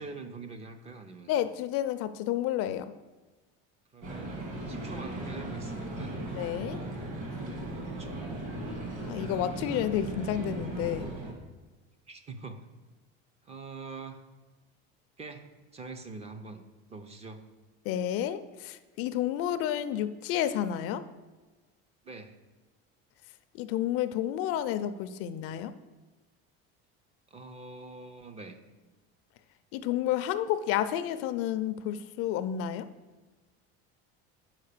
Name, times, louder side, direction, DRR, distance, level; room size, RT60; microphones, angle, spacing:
voice 1, 0.0-1.3 3.9-6.1 8.0-8.8 12.1-12.6 13.4-14.2 15.2-15.5 15.7-16.6 16.9-17.4 22.0-22.4 27.3-28.6, right 3 dB, 20° right, 8 dB, 0.4 m, -44 dB
voice 2, 1.3-2.9 6.3-6.8 9.0-11.1 17.9-21.0 23.5-25.7 29.7-32.9, left 11 dB, 55° left, 12 dB, 0.4 m, -30 dB
sound 1, 4.0-11.3, right 2 dB, 45° right, 1.9 m, -37 dB
5.7 x 4.8 x 6.6 m, 1.3 s
cardioid pair, 155°, 29 cm